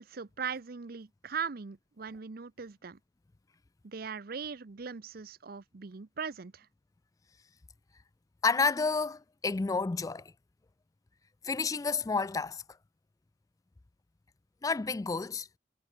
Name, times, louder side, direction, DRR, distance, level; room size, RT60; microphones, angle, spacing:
voice 1, 0.0-3.0 3.8-6.7, right 6 dB, 55° right, 0.7 m, -39 dB
voice 2, 8.4-10.3 11.4-12.6 14.6-15.5, left 4 dB, 20° left, 0.3 m, -30 dB
head